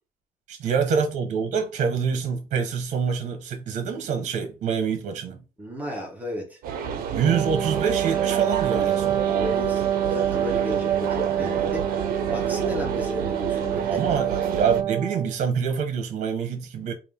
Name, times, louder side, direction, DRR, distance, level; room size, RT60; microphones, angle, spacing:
voice 1, 0.5-5.4 7.1-9.2 13.9-17.0, right 6 dB, 50° right, 0.9 m, -26 dB
voice 2, 5.6-6.6 9.3-14.2, equal, 10° right, 0.8 m, -34 dB
sound 1, 6.6-14.8, right 7 dB, 75° right, 0.6 m, -30 dB
Wind instrument woodwind instrument, 7.2-15.4, right 10 dB, 30° right, 0.4 m, -26 dB
3.4 x 2.5 x 3.5 m
cardioid pair, 175°, 15 cm